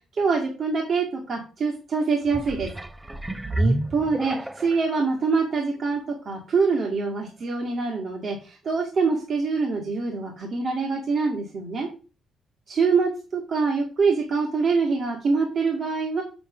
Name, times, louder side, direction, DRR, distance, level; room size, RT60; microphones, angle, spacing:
voice 1, 0.1-2.7 3.6-11.9 12.7-16.2, right 4 dB, 50° right, -1 dB, 2.1 m, -25 dB
sound 1, 2.2-4.9 5.5-5.6, right 1 dB, 15° right, 0.6 m, -28 dB
7.0 x 6.5 x 3.9 m, 0.35 s
cardioid pair, 90°, 0 cm